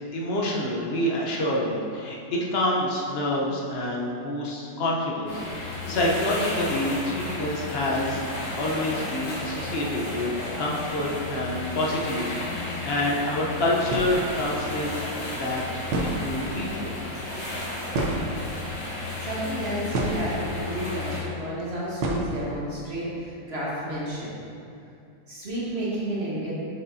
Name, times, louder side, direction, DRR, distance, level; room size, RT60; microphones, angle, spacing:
voice 1, 0.1-2.2 2.5-10.3 10.6-14.9 15.3-15.6 16.0-16.9, left 1 dB, 45° left, -3 dB, 0.8 m, -27 dB
sound 1, 5.3-21.2, left 2 dB, 65° left, 2.4 m, -33 dB
sound 2, 13.9-14.2 15.5-15.6 15.8-16.6 17.9-18.7 19.4-20.4 22.0-22.6, right 2 dB, 70° right, 1.4 m, -28 dB
voice 2, 19.2-24.3 25.3-26.5, right 1 dB, 35° right, -7 dB, 1.4 m, -31 dB
6.7 x 6.6 x 2.7 m, 2.5 s
omnidirectional pair, 2.0 m